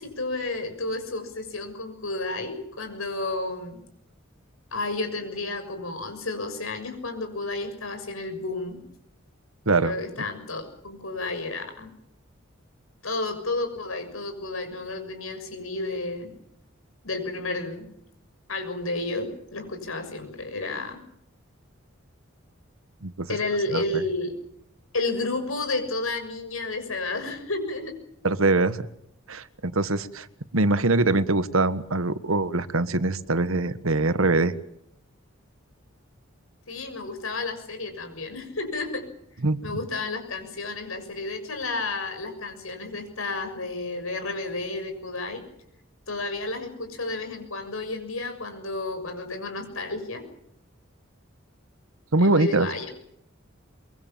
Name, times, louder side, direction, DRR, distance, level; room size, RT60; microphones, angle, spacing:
voice 1, 0.0-3.8 4.7-8.8 9.7-11.9 13.0-16.3 17.0-17.9 18.5-21.0 23.3-24.3 24.9-27.9 36.7-39.0 39.6-45.4 46.1-50.2 52.2-52.8, left 2 dB, 90° left, 6 dB, 6.7 m, -31 dB
voice 2, 28.2-28.9 29.3-30.3 30.5-34.5 39.4-39.6 52.1-52.7, right 2 dB, 85° right, 13 dB, 1.4 m, -23 dB
24.5 x 23.5 x 7.5 m, 0.75 s
head